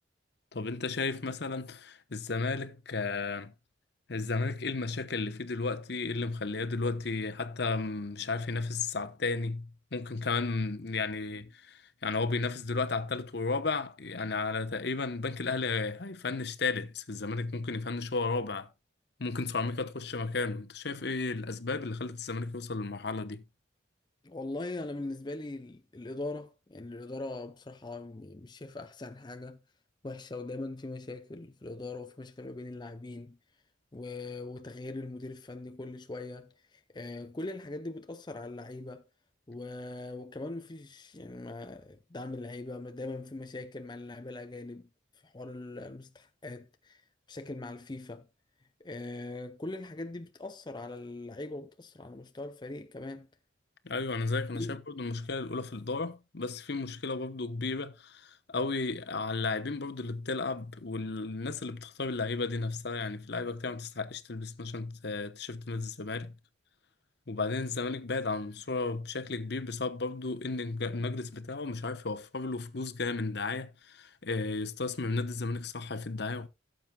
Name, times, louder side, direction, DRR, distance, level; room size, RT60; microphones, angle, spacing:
voice 1, 0.5-3.5 4.1-18.7 19.2-23.4 53.8-66.3 67.3-76.5, left 3 dB, 60° left, 1.0 m, -33 dB
voice 2, 24.2-29.6 30.0-33.4 33.9-39.0 39.5-44.9 45.2-47.0 47.3-48.3 48.8-53.3 54.5-54.8, left 2 dB, 20° left, 0.5 m, -41 dB
16.5 x 7.6 x 2.3 m
head